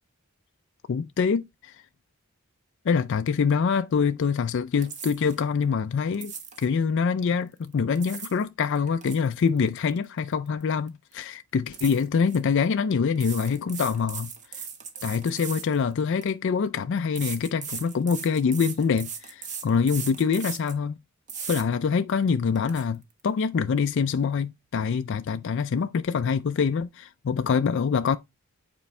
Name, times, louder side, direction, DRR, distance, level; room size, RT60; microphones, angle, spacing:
voice 1, 0.9-1.8 2.9-6.3 6.6-14.6 15.0-21.0 21.5-28.2, left 6 dB, 55° left, 0.4 m, -25 dB
sound 1, 4.8-5.4 6.1-6.7 7.7-8.4 8.8-10.6 10.9-11.1 11.7-12.4 13.2-16.3 17.2-20.8 21.3-21.6 22.1-22.2 22.6-22.8, right 6 dB, 35° right, 1.0 m, -38 dB
8.4 x 4.5 x 3.1 m
head